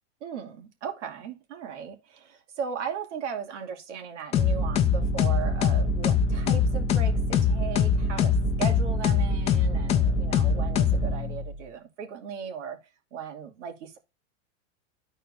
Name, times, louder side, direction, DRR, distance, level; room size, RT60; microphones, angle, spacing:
voice 1, 0.2-12.8 13.1-14.0, right 7 dB, 75° right, 2.5 m, -37 dB
sound 1, 4.3-11.5, left 5 dB, 20° left, 0.5 m, -23 dB
13.0 x 4.5 x 2.6 m
supercardioid pair, 150°, 36 cm